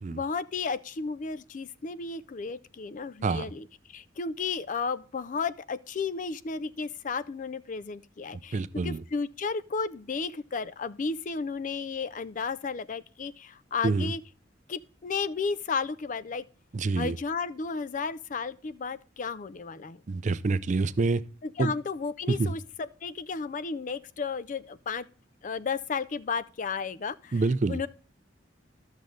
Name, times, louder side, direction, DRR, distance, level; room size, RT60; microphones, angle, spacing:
voice 1, 0.1-14.2 14.7-16.5 17.0-20.0 21.4-25.1 25.4-27.4 27.7-27.9, left 5 dB, 40° left, 0.4 m, -33 dB
voice 2, 8.5-9.0 13.8-14.1 16.7-17.2 20.1-21.2 21.6-21.7 22.3-22.5 27.3-27.8, right 3 dB, 40° right, 0.4 m, -27 dB
12.5 x 6.4 x 3.8 m
head